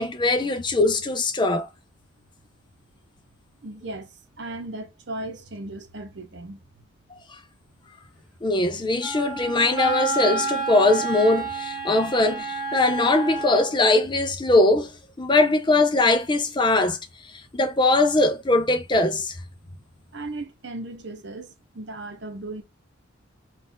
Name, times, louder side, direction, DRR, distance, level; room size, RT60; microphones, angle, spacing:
voice 1, 0.0-1.7 7.3-7.4 8.4-19.4, left 2 dB, 25° left, 0.5 m, -21 dB
voice 2, 3.6-6.6 11.8-11.9 20.1-22.6, right 2 dB, 60° right, 0.8 m, -36 dB
Wind instrument woodwind instrument, 9.0-13.8, right 3 dB, ahead, 1.9 m, -30 dB
4.1 x 2.5 x 3.8 m
head